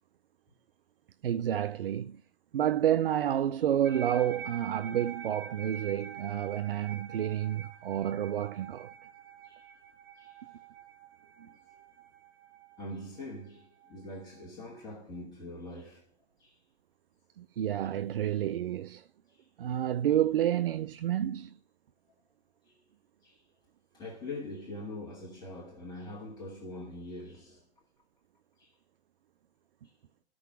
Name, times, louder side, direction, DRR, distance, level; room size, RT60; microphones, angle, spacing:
voice 1, 1.2-2.2 2.5-8.9 11.4-11.5 17.4-19.1 19.6-21.6, right 11 dB, 55° right, 0.6 m, -29 dB
sound 1, 3.8-14.4, right 7 dB, 40° right, 3.2 m, -46 dB
voice 2, 12.8-16.1 16.4-16.6 17.8-17.9 19.3-19.5 22.6-22.8 23.2-23.4 23.9-27.7 28.6-28.7 29.8-29.9, left 1 dB, 10° left, 2.0 m, -43 dB
14.5 x 6.2 x 6.0 m
figure-of-eight pair, 130°, 33 cm